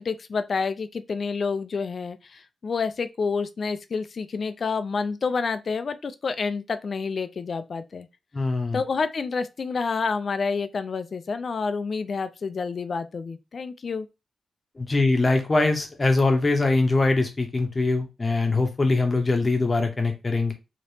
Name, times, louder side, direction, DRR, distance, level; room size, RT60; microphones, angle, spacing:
voice 1, 0.0-8.1 8.7-14.1, left 5 dB, 50° left, 0.3 m, -28 dB
voice 2, 8.3-8.8 14.8-20.5, left 3 dB, 30° left, 0.7 m, -22 dB
3.3 x 2.8 x 2.7 m
wide cardioid pair, 110°, 0 cm